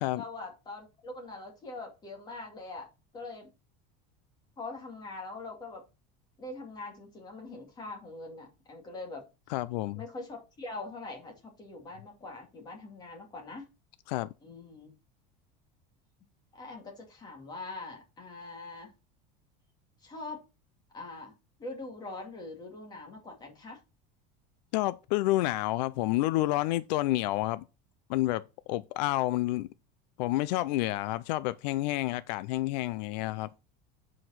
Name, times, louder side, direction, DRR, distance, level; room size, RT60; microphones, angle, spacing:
voice 1, 0.1-3.5 4.6-5.9 6.4-9.3 9.9-13.7 14.4-14.9 16.5-18.9 20.0-20.4 20.9-21.3 21.6-23.8, left 3 dB, 20° left, 2.5 m, -43 dB
voice 2, 9.5-10.0 14.1-14.3 24.7-27.6 28.1-28.4 28.7-29.7 30.2-33.5, left 17 dB, 85° left, 0.5 m, -29 dB
7.9 x 4.9 x 5.7 m
cardioid pair, 175°, 21 cm